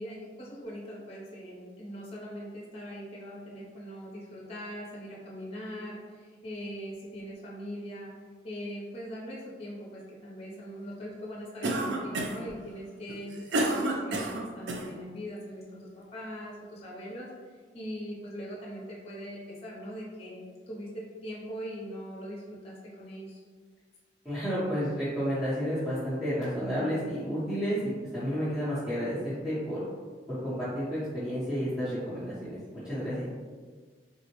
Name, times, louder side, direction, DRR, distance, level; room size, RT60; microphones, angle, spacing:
voice 1, 0.0-8.1 8.4-23.4, equal, 35° left, -4 dB, 0.6 m, -41 dB
Cough, 11.6-12.5 13.1-14.9, right 1 dB, 80° right, 0.4 m, -29 dB
voice 2, 24.2-27.8 28.1-29.8 30.3-33.3, equal, 5° right, -13 dB, 0.7 m, -31 dB
3.6 x 2.0 x 2.8 m, 1.5 s
head